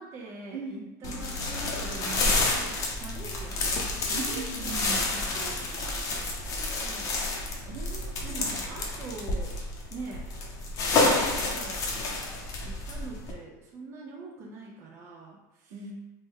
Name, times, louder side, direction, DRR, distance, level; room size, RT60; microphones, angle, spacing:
voice 1, 0.0-3.7 4.1-7.2 8.2-9.6 9.9-10.3 11.0-11.9 12.6-15.8, right 3 dB, 30° right, -1 dB, 0.4 m, -43 dB
voice 2, 0.5-0.9 4.1-5.0 7.6-8.8 15.7-15.9, right 4 dB, 60° right, -1 dB, 0.8 m, -39 dB
sound 1, 1.0-13.3, left 2 dB, 35° left, 0.6 m, -29 dB
3.1 x 2.1 x 3.4 m, 1.1 s
supercardioid pair, 135°, 9 cm